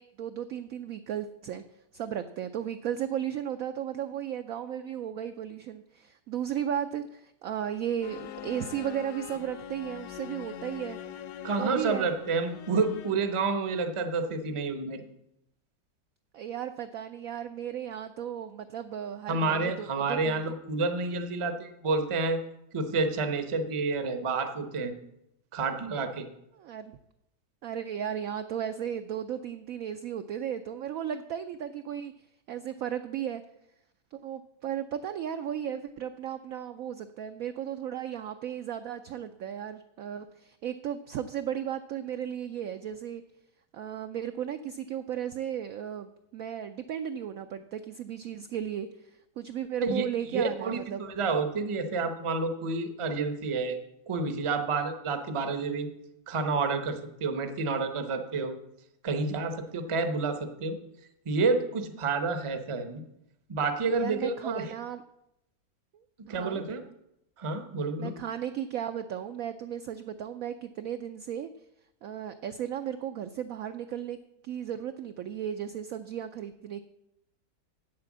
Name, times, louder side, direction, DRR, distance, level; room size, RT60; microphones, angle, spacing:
voice 1, 0.0-1.6 1.9-11.0 11.6-12.1 16.3-20.4 26.5-26.9 27.6-32.1 32.5-33.4 34.1-43.2 43.7-49.1 49.4-51.1 63.9-65.0 65.9-66.6 68.0-71.5 72.0-76.8, right 9 dB, 75° right, 9 dB, 0.8 m, -35 dB
sound 1, 8.0-13.4, left 10 dB, 70° left, 1.2 m, -42 dB
voice 2, 11.4-15.0 19.3-22.4 22.7-24.9 25.5-26.3 49.8-50.1 50.3-53.8 54.1-55.9 56.3-58.5 59.0-60.8 61.3-63.0 63.5-64.7 66.2-66.8 67.4-68.2, right 4 dB, 30° right, 7 dB, 0.6 m, -29 dB
8.3 x 7.7 x 7.2 m, 0.82 s
omnidirectional pair, 1.9 m